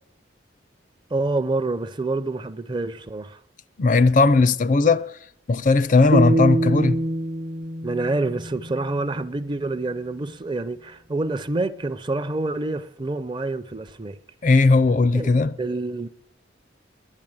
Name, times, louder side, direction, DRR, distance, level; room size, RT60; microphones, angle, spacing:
voice 1, 1.1-3.4 7.8-14.2 15.1-15.3 15.6-16.1, right 2 dB, 25° right, 0.5 m, -27 dB
voice 2, 3.8-5.1 5.5-7.0 14.4-15.6, left 3 dB, 45° left, 0.4 m, -17 dB
sound 1, 6.1-9.3, right 2 dB, 65° right, 0.9 m, -25 dB
11.0 x 10.5 x 8.7 m
head